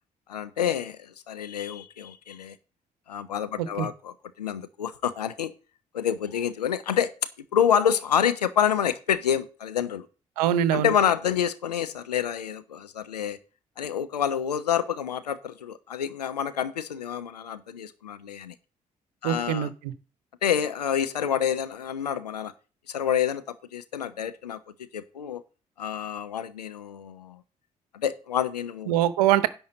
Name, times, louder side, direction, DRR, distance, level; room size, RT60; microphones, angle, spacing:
voice 1, 0.3-2.6 3.1-5.5 5.9-7.1 7.5-10.1 10.7-13.4 13.8-18.5 19.2-19.7 20.4-22.5 22.9-24.6 24.9-25.4 25.8-27.4 27.9-28.9, left 9 dB, 85° left, 0.6 m, -28 dB
voice 2, 10.4-10.9 19.2-19.7 28.9-29.5, right 11 dB, 75° right, 0.8 m, -23 dB
10.5 x 4.4 x 7.8 m
figure-of-eight pair, 45°, 20 cm